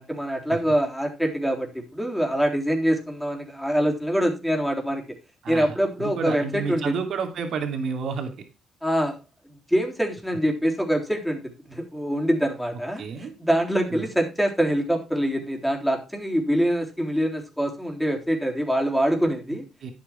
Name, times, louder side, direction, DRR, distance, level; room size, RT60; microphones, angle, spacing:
voice 1, 0.0-5.0 5.5-6.9 8.8-9.2 9.5-19.7, equal, ahead, 2 dB, 3.7 m, -25 dB
voice 2, 5.4-8.3 13.0-13.3 13.9-14.1 19.8-19.9, right 5 dB, 65° right, 5 dB, 2.8 m, -30 dB
11.0 x 8.5 x 4.5 m, 0.28 s
cardioid pair, 90°, 0 cm